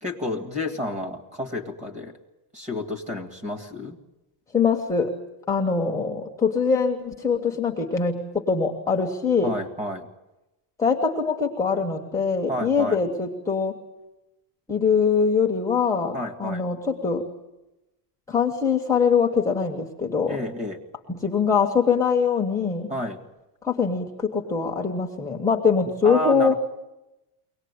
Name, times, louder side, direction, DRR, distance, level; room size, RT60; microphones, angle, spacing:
voice 1, 0.0-2.2 2.5-4.0 9.4-10.1 12.5-13.0 16.1-16.7 20.3-20.8 22.9-23.2 26.0-26.5, left 1 dB, 15° right, 9 dB, 1.8 m, -30 dB
voice 2, 4.5-5.1 5.5-8.2 8.5-9.5 10.8-13.7 14.7-17.2 18.3-20.4 21.1-22.9 23.6-26.5, left 5 dB, 5° left, 0 dB, 1.2 m, -23 dB
23.0 x 18.5 x 9.5 m, 0.98 s
cardioid pair, 175°, 43 cm